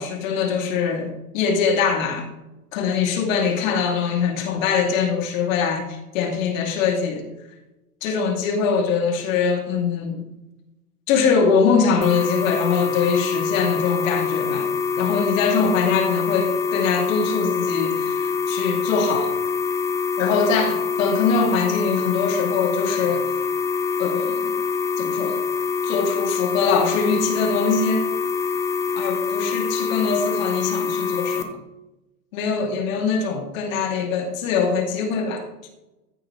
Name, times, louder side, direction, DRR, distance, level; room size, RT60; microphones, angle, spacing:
voice 1, 0.0-2.3 2.7-7.2 8.0-10.3 11.1-14.7 15.0-19.3 20.2-23.3 24.0-24.5 25.0-25.4 25.8-28.1 29.0-31.5 32.3-35.7, left 5 dB, 60° left, 3 dB, 2.5 m, -23 dB
sound 1, 12.0-31.4, left 5 dB, 5° left, 0.4 m, -25 dB
14.5 x 6.3 x 3.2 m, 0.97 s
hypercardioid pair, 105°, 46 cm